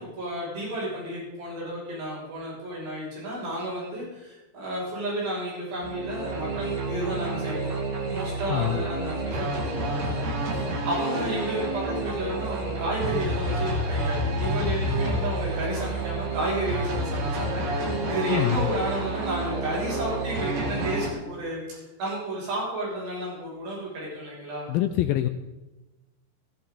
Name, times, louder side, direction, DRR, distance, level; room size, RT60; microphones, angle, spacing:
voice 1, 0.0-7.7 8.1-24.7, right 1 dB, 85° right, -5 dB, 8.7 m, -32 dB
sound 1, 5.8-21.1, right 1 dB, 45° right, 2.7 m, -29 dB
voice 2, 8.5-8.8 18.3-18.7 24.7-25.3, left 13 dB, 80° left, 9 dB, 2.2 m, -25 dB
16.5 x 14.5 x 3.9 m, 1.1 s
omnidirectional pair, 4.8 m